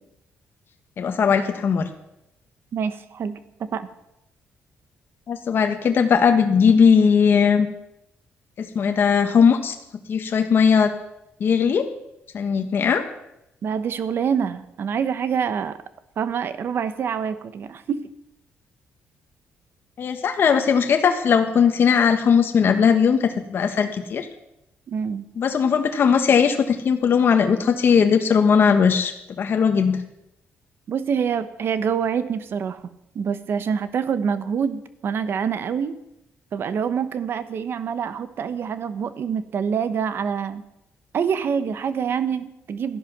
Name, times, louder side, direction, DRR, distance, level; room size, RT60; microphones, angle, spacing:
voice 1, 1.0-1.9 5.3-7.7 8.6-9.7 10.1-10.9 11.4-11.9 12.3-13.0 20.0-24.3 25.4-30.0, left 6 dB, 50° left, 6 dB, 1.3 m, -18 dB
voice 2, 2.7-3.4 3.7-3.9 13.6-15.8 16.2-18.1 24.9-25.2 30.9-32.8 33.1-36.0 36.5-40.6 41.1-43.0, right 7 dB, 55° right, 12 dB, 1.0 m, -26 dB
14.0 x 11.0 x 6.0 m, 0.86 s
cardioid pair, 125°, 5 cm